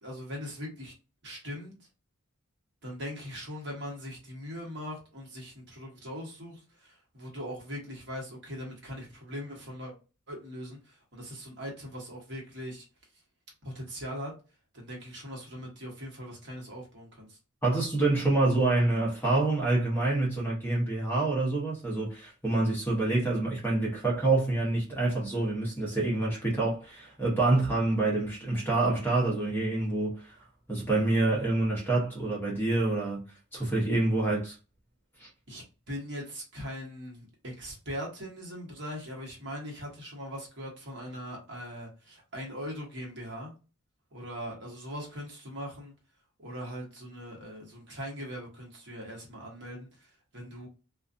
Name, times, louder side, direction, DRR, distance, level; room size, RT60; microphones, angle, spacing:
voice 1, 0.0-0.9 1.2-1.7 2.8-9.9 10.3-12.8 13.6-14.3 14.7-17.4 35.5-43.5 44.1-45.9 46.4-50.7, equal, 55° right, 1.1 m, -40 dB
voice 2, 17.6-30.3 30.7-33.2 33.5-34.5 35.2-35.3, right 2 dB, 10° left, 0.9 m, -27 dB
2.4 x 2.4 x 2.5 m
head